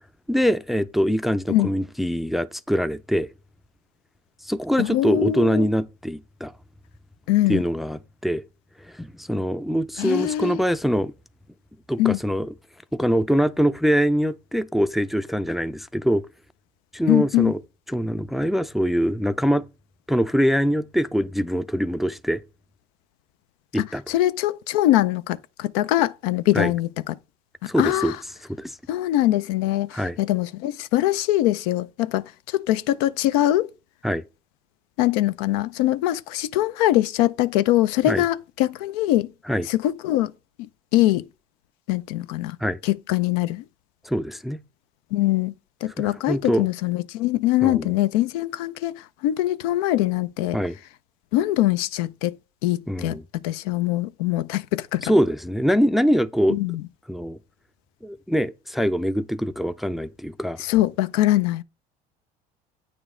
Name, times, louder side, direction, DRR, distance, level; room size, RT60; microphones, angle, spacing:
voice 1, 0.3-3.3 4.4-6.5 7.5-8.4 8.8-11.1 11.9-12.5 12.9-16.2 16.9-17.6 17.9-19.6 20.1-22.4 23.7-24.0 26.5-26.7 27.6-28.1 28.5-28.8 29.9-30.2 34.0-34.2 38.1-38.2 39.5-39.7 42.6-42.8 44.0-44.6 46.0-46.7 47.6-47.9 50.5-50.8 52.9-53.2 55.0-56.6 57.1-57.4 58.0-60.6, equal, ahead, 0.4 m, -23 dB
voice 2, 4.8-5.7 7.3-7.6 10.0-10.6 12.0-12.2 17.1-17.5 23.8-27.1 27.6-28.2 28.9-33.7 35.0-39.3 39.7-40.3 40.9-41.3 41.9-42.6 42.8-43.6 45.1-45.5 45.8-50.6 51.3-52.3 52.6-55.1 56.5-56.8 60.6-61.6, left 15 dB, 85° left, 0.4 m, -23 dB
8.8 x 5.0 x 3.7 m
supercardioid pair, 95°, 19 cm